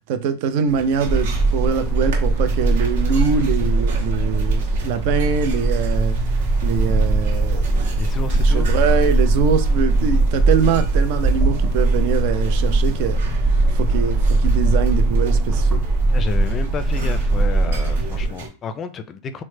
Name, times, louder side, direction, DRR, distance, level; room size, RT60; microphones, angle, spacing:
voice 1, 0.1-6.2 6.6-7.9 8.3-13.2 13.7-15.8, right 7 dB, 55° right, 0.5 m, -23 dB
sound 1, 0.7-18.5, right 3 dB, 80° right, 1.0 m, -36 dB
sound 2, 1.0-18.2, right 2 dB, 15° right, 0.9 m, -19 dB
voice 2, 8.0-8.7 16.1-19.4, left 5 dB, 30° left, 0.4 m, -30 dB
3.1 x 2.1 x 3.2 m
supercardioid pair, 135°, 0 cm